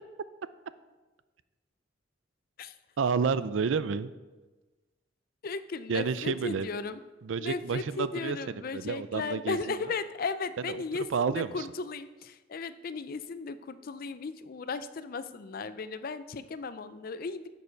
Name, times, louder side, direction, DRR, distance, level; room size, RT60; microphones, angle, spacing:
voice 1, 3.0-4.1 5.9-6.7 7.2-8.4 8.7-9.8 10.7-10.8 11.1-11.7, right 5 dB, 80° right, 14 dB, 0.4 m, -30 dB
voice 2, 5.4-7.0 7.4-17.5, left 4 dB, 50° left, 13 dB, 0.4 m, -36 dB
10.5 x 6.7 x 4.6 m, 1.2 s
head